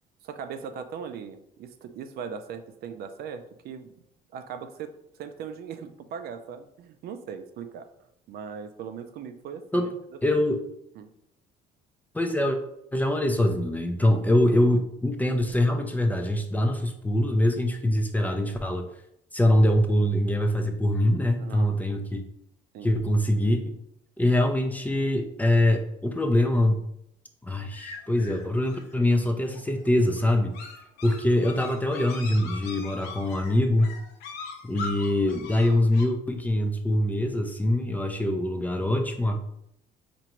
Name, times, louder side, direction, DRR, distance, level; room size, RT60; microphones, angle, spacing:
voice 1, 0.2-3.9 4.3-4.9 5.2-7.9 8.3-9.9 11.0-11.1 21.4-21.8 22.7-23.0, right 7 dB, 65° right, 8 dB, 0.4 m, -39 dB
voice 2, 10.2-10.6 12.1-12.6 12.9-18.9 19.3-22.2 22.8-23.8 24.2-26.8 27.4-30.5 31.0-34.0 34.6-39.4, left 1 dB, 10° left, 4 dB, 0.4 m, -24 dB
sound 1, 27.7-36.0, left 4 dB, 85° left, 0.7 m, -41 dB
4.4 x 2.6 x 2.9 m, 0.78 s
cardioid pair, 110°, 17 cm